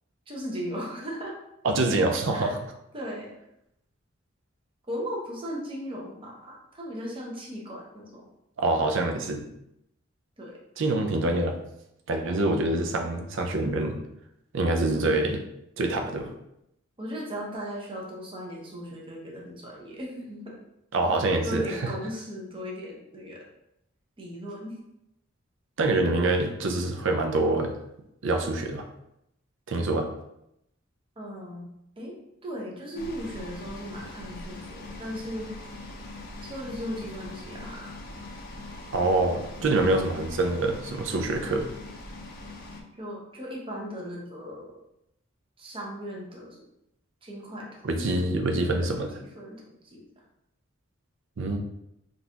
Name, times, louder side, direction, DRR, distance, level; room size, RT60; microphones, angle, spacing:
voice 1, 0.3-1.4 2.3-2.6 2.9-3.4 4.9-8.3 10.4-10.6 14.9-15.4 17.0-20.6 21.4-23.5 24.2-24.8 31.2-31.7 32.0-32.2 32.4-35.5 36.4-38.0 42.9-44.8 45.6-46.6 47.2-48.2 48.7-50.1, equal, 25° right, -2 dB, 0.7 m, -37 dB
voice 2, 1.6-2.6 8.6-9.5 10.8-11.6 12.1-14.0 14.5-15.4 15.8-16.3 20.9-21.9 25.8-27.7 28.2-28.8 29.7-30.1 38.9-41.7 47.8-49.1 51.4-51.6, right 2 dB, 65° right, 4 dB, 0.5 m, -25 dB
sound 1, 32.9-42.8, left 2 dB, 45° left, 0.5 m, -41 dB
3.8 x 2.4 x 2.8 m, 0.81 s
head